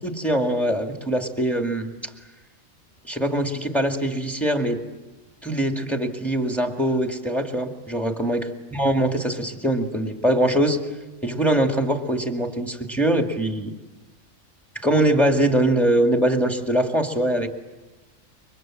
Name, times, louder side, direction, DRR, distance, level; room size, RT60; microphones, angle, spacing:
voice 1, 0.0-1.9 3.0-4.8 5.4-8.5 8.7-10.8 11.2-13.7 14.8-17.5, right 1 dB, ahead, 4 dB, 2.1 m, -22 dB
29.0 x 24.0 x 7.6 m, 1.2 s
omnidirectional pair, 1.4 m